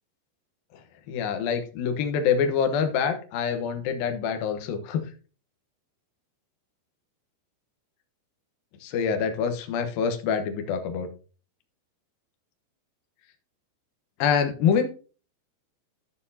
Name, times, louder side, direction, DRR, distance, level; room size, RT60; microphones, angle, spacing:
voice 1, 1.1-5.0 8.8-11.1 14.2-14.9, left 7 dB, 65° left, 6 dB, 2.6 m, -25 dB
12.0 x 9.1 x 2.8 m, 0.37 s
omnidirectional pair, 5.0 m